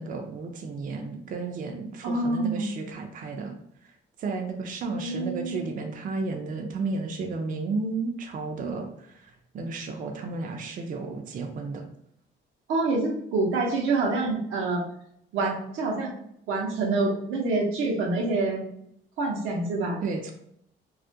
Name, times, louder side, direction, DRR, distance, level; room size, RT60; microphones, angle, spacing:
voice 1, 0.0-3.6 4.2-8.9 9.5-11.9 20.0-20.3, right 3 dB, 45° right, 3 dB, 0.4 m, -32 dB
voice 2, 2.0-2.7 4.9-5.7 12.7-14.8 15.3-16.2 16.5-18.7 19.2-20.1, right 3 dB, 85° right, 0 dB, 0.6 m, -27 dB
2.3 x 2.1 x 2.6 m, 0.72 s
cardioid pair, 90°, 20 cm